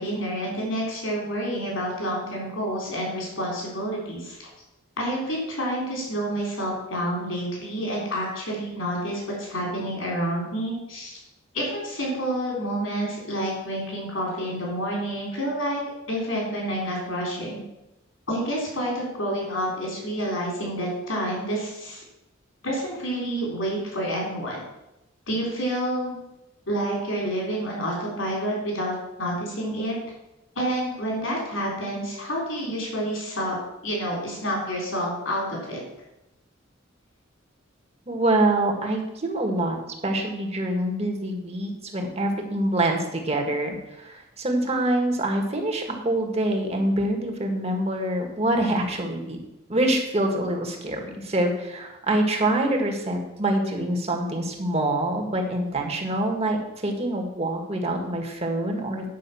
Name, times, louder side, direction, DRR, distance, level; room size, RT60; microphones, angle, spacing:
voice 1, 0.0-4.5 5.0-11.2 11.5-15.8 16.1-17.6 18.3-22.0 22.6-24.6 25.3-26.2 26.7-30.0 30.6-33.6 33.8-35.8, equal, 75° left, -3 dB, 3.7 m, -28 dB
voice 2, 38.1-39.8 40.0-49.4 49.7-56.6 56.8-59.1, right 1 dB, 30° right, 2 dB, 1.7 m, -25 dB
9.5 x 5.5 x 7.1 m, 0.92 s
head